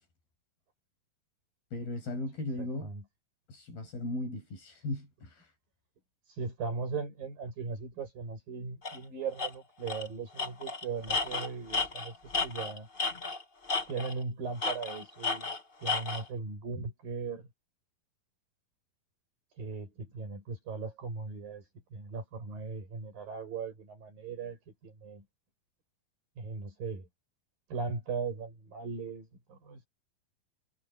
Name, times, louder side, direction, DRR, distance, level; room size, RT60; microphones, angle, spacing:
voice 1, 1.7-2.9 3.5-5.5, left 2 dB, 85° left, 9.8 m, -37 dB
voice 2, 2.6-3.0 6.3-12.2 12.4-12.9 13.9-15.5 15.8-17.5 19.6-25.2 26.4-27.1 27.7-29.8, right 5 dB, 70° right, 9.7 m, -38 dB
Tools, 8.8-9.0 9.4-9.5 9.9-10.1 10.4-13.4 13.7-14.2 14.6-16.2, left 4 dB, 45° left, 0.6 m, -32 dB
omnidirectional pair, 4.1 m